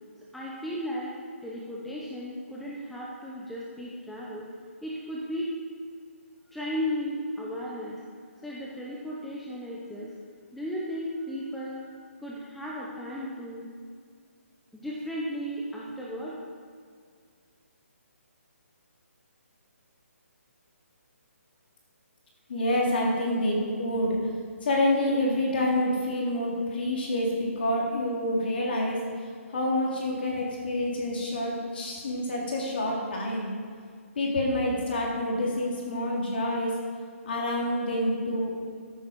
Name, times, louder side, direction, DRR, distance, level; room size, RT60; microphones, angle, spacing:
voice 1, 0.3-1.1 1.4-4.5 4.8-5.5 6.5-8.0 8.4-10.1 10.5-12.0 12.2-13.7 14.7-16.3, equal, ahead, -6 dB, 0.8 m, -35 dB
voice 2, 22.5-24.2 24.6-29.0 29.5-33.5 34.2-36.7 37.3-38.5, left 1 dB, 45° left, -2 dB, 3.6 m, -27 dB
14.0 x 9.3 x 5.3 m, 2.1 s
hypercardioid pair, 170°, 8 cm